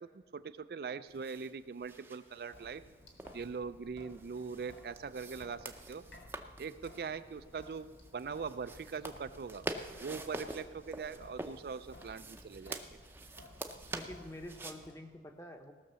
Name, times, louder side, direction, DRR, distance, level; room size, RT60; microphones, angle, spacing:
voice 1, 0.0-2.8 3.3-6.0 6.6-7.9 8.1-9.6 10.0-12.8, right 5 dB, 60° right, 13 dB, 0.4 m, -41 dB
sound 1, 1.1-14.8, right 2 dB, 10° right, 0.6 m, -47 dB
Sink (filling or washing) / Drip, 2.5-14.9, left 1 dB, 85° left, 2.1 m, -57 dB
voice 2, 13.9-15.7, left 1 dB, 15° left, 5 dB, 0.9 m, -47 dB
18.0 x 6.5 x 6.8 m, 1.5 s
head